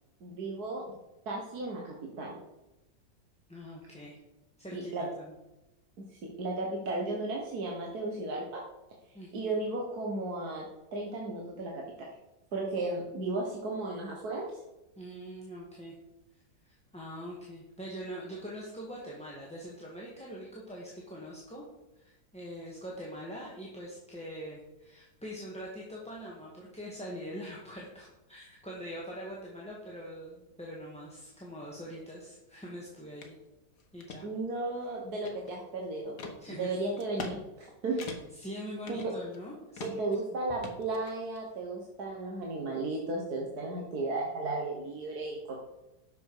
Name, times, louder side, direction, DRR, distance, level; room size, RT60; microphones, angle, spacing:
voice 1, 0.2-0.8 1.3-2.4 4.7-5.1 6.1-8.6 9.3-10.7 10.9-11.8 12.5-14.5 34.2-36.1 36.5-38.0 38.9-39.0 39.8-45.6, right 2 dB, 60° right, -1 dB, 1.8 m, -34 dB
voice 2, 3.5-4.2 4.6-5.3 9.1-9.5 14.9-15.9 16.6-21.6 21.9-33.4 33.9-34.3 36.4-36.7 37.9-38.0 38.4-40.1, equal, 5° left, -4 dB, 1.7 m, -43 dB
sound 1, 33.2-33.3 33.8-34.2 34.7-35.7 36.2-36.4 37.0-37.4 37.6-37.7 38.0-38.5 38.9-39.4 39.8-40.2 40.6-41.4, left 3 dB, 65° left, 1.8 m, -42 dB
11.0 x 7.1 x 4.9 m, 0.99 s
omnidirectional pair, 1.9 m